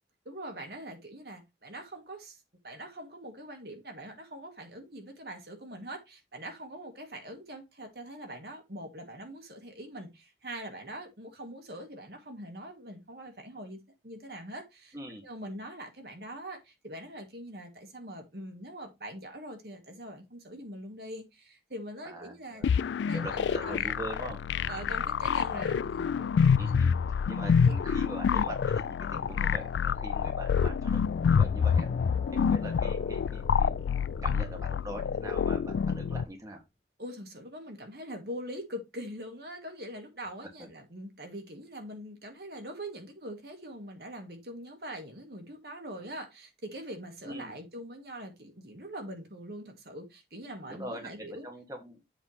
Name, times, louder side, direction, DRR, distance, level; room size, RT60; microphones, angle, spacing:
voice 1, 0.3-2.4 2.6-13.8 14.0-15.0 15.2-22.7 23.1-23.9 24.7-26.3 27.6-27.7 37.0-51.5, right 1 dB, 60° right, 1.9 m, -43 dB
voice 2, 14.9-15.2 22.0-22.7 23.1-24.4 26.6-26.9 27.3-31.9 32.3-33.7 34.2-36.6 40.6-40.7 47.2-47.5 50.7-51.0 51.4-52.0, right 1 dB, 15° right, 1.6 m, -42 dB
sound 1, 22.6-36.2, left 6 dB, 80° left, 0.3 m, -27 dB
Gong, 31.1-36.3, left 2 dB, 25° left, 0.6 m, -46 dB
7.9 x 3.2 x 5.7 m
head